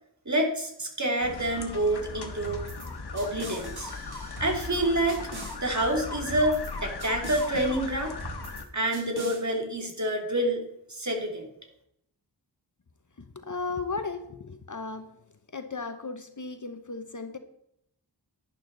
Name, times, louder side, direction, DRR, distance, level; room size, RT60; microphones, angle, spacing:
voice 1, 0.2-2.6 3.1-3.9 4.4-5.2 5.6-8.1 8.7-10.6 10.9-11.5, right 1 dB, 40° right, 2 dB, 2.8 m, -27 dB
sound 1, 1.2-8.6, left 4 dB, 65° left, 1.4 m, -38 dB
sound 2, 2.4-2.9 3.2-4.8 5.1-5.6 6.3-6.7 7.0-7.5 8.2-8.6 8.9-9.4, right 2 dB, 60° right, 3.4 m, -41 dB
voice 2, 13.2-15.1 15.5-17.4, left 4 dB, 45° left, 8 dB, 1.0 m, -35 dB
11.5 x 11.0 x 4.0 m, 0.76 s
wide cardioid pair, 70°, 42 cm